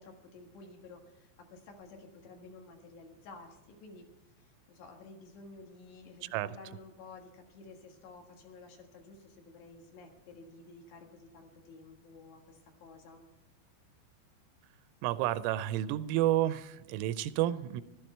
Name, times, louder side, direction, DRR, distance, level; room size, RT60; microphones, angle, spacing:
voice 1, 0.0-4.1 4.4-13.3, left 3 dB, 65° left, 2 dB, 3.7 m, -52 dB
voice 2, 6.2-6.6 15.0-17.8, right 13 dB, 85° right, 14 dB, 3.1 m, -30 dB
15.0 x 13.0 x 4.4 m, 1.0 s
omnidirectional pair, 5.6 m